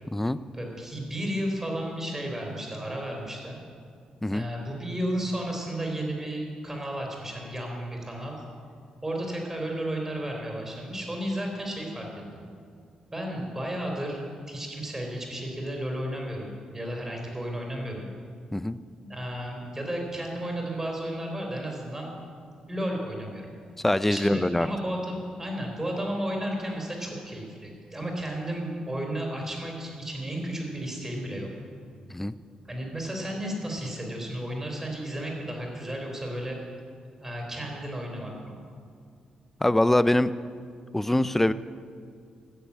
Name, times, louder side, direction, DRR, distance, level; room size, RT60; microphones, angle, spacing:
voice 1, 0.5-3.6 4.3-8.4 9.0-12.4 13.1-18.1 19.0-22.1 22.7-23.5 24.1-31.5 32.7-36.6 37.2-38.6, right 1 dB, 15° right, 0 dB, 3.8 m, -33 dB
voice 2, 23.8-24.7 32.1-32.3 39.6-40.3 40.9-41.5, left 1 dB, 10° left, 15 dB, 0.5 m, -23 dB
14.5 x 6.8 x 8.6 m, 2.3 s
cardioid pair, 80°, 2 cm